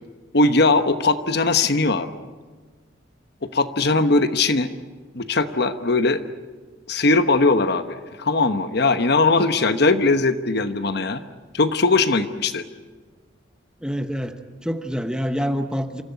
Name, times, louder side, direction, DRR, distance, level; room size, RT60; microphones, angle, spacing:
voice 1, 0.3-2.1 3.4-4.7 5.1-6.2 6.9-11.2 11.5-12.6, left 3 dB, 55° left, 10 dB, 1.1 m, -20 dB
voice 2, 13.8-16.0, equal, 5° right, 7 dB, 1.0 m, -26 dB
27.0 x 14.5 x 9.9 m, 1.4 s
head